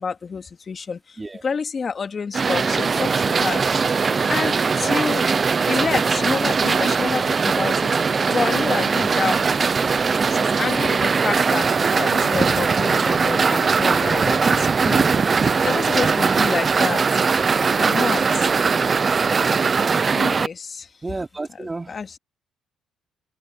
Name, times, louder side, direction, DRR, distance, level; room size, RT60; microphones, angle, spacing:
voice 1, 0.0-3.6 4.3-5.3 5.7-8.0 8.2-9.5 10.3-15.1 15.6-17.2 17.8-18.5 20.1-20.9 21.6-22.1, left 5 dB, 40° left, 2.6 m, -28 dB
sound 1, 2.3-20.5, right 5 dB, 40° right, 0.6 m, -20 dB
voice 2, 21.0-22.2, right 3 dB, 20° right, 3.1 m, -32 dB
open air
supercardioid pair, 60°, 0 cm